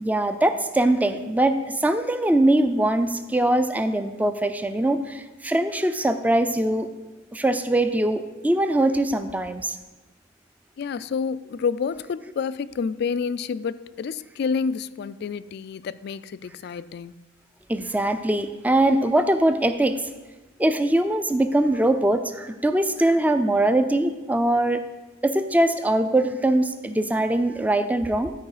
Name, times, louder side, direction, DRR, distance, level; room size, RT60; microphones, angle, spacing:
voice 1, 0.0-6.9 7.3-9.8 17.7-20.0 20.6-24.8 25.2-28.3, right 1 dB, 10° right, 0.4 m, -22 dB
voice 2, 10.8-17.1, left 5 dB, 60° left, 0.3 m, -29 dB
12.5 x 4.7 x 4.9 m
head